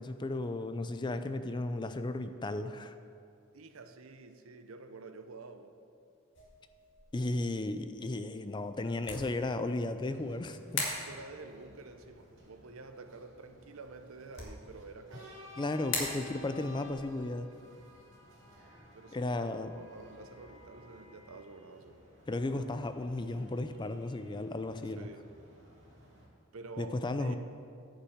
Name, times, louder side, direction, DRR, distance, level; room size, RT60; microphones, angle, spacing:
voice 1, 0.0-3.0 7.1-10.9 15.6-17.5 19.1-19.7 22.3-25.1 26.8-27.4, left 2 dB, 20° left, 10 dB, 0.4 m, -34 dB
voice 2, 3.5-5.7 10.9-15.4 18.9-22.1 24.9-25.3 26.5-27.4, right 3 dB, 85° right, 8 dB, 0.7 m, -49 dB
sound 1, 6.3-20.5, left 3 dB, 60° left, 2.1 m, -45 dB
sound 2, 10.0-26.3, left 1 dB, 60° right, 2.5 m, -55 dB
9.9 x 5.7 x 7.2 m, 2.5 s
head